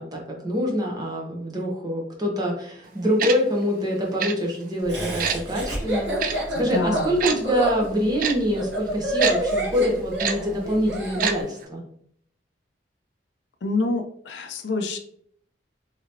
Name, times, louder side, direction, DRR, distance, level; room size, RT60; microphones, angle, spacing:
voice 1, 0.0-11.8, equal, 20° right, -1 dB, 0.7 m, -25 dB
Tick-tock, 3.2-3.4 4.2-4.3 5.2-5.4 6.2-6.3 7.2-7.4 8.2-8.3 9.2-9.3 10.2-10.3 11.2-11.3 11.6-11.7, right 7 dB, 50° right, 0.3 m, -24 dB
Laughter, 4.9-11.3, right 1 dB, 75° right, 1.1 m, -28 dB
voice 2, 6.5-7.1 13.6-15.0, left 3 dB, 75° left, 5 dB, 0.5 m, -27 dB
3.2 x 2.9 x 2.6 m, 0.65 s
head